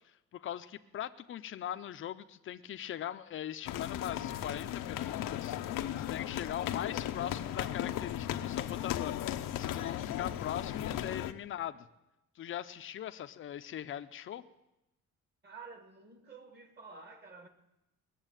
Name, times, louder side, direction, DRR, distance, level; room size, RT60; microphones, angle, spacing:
voice 1, 0.3-9.1 9.6-11.8 12.4-14.4, left 11 dB, 40° left, 0.6 m, -40 dB
sound 1, 3.7-11.3, left 11 dB, 90° left, 0.8 m, -36 dB
voice 2, 15.4-17.5, right 4 dB, 30° right, 1.5 m, -50 dB
20.0 x 7.4 x 9.0 m
cardioid pair, 165°, 32 cm